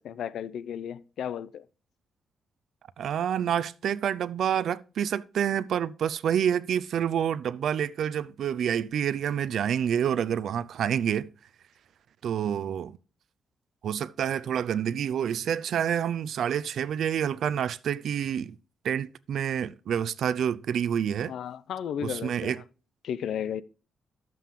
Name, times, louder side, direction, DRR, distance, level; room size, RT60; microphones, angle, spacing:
voice 1, 0.0-1.6 21.3-22.6 23.0-23.6, left 9 dB, 75° left, 0.5 m, -34 dB
voice 2, 3.0-11.3 12.2-13.0 13.8-18.6 18.8-21.3 22.0-22.6, right 9 dB, 65° right, 0.4 m, -28 dB
11.5 x 7.6 x 3.6 m
wide cardioid pair, 165°, 0 cm